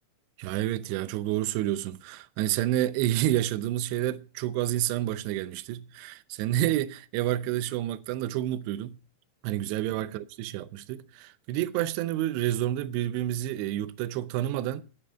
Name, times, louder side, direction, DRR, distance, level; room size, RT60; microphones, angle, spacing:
voice 1, 0.4-9.0 9.4-14.8, right 13 dB, 80° right, 2.6 m, -29 dB
13.0 x 5.6 x 9.0 m
omnidirectional pair, 5.5 m